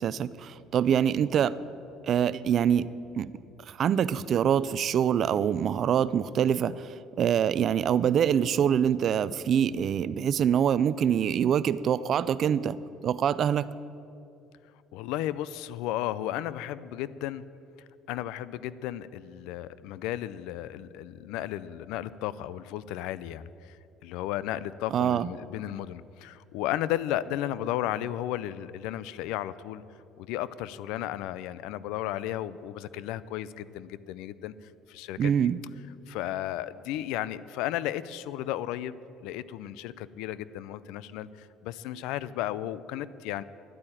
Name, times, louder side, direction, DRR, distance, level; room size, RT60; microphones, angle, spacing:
voice 1, 0.0-1.5 2.0-2.9 3.2-3.3 3.7-12.8 13.0-13.7 24.9-25.3 35.2-35.6, right 8 dB, 45° right, 17 dB, 0.4 m, -25 dB
voice 2, 14.9-17.4 18.1-23.8 24.0-29.8 30.2-35.3 36.1-43.4, left 13 dB, 80° left, 17 dB, 0.5 m, -34 dB
11.0 x 8.8 x 9.9 m, 2.6 s
cardioid pair, 145°, 0 cm